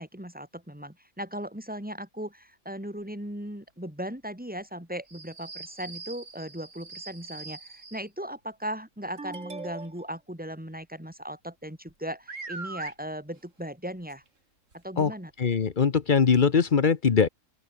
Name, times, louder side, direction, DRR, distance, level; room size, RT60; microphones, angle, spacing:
voice 1, 0.0-14.2 14.7-15.5, equal, 5° right, 4.3 m, -37 dB
sound 1, 5.1-8.1 9.2-10.1 11.9-12.0 12.3-12.9 14.1-14.2 14.7-14.8 15.6-15.7, right 3 dB, 75° right, 3.6 m, -41 dB
voice 2, 15.4-17.3, left 6 dB, 45° left, 1.0 m, -21 dB
open air
omnidirectional pair, 1.3 m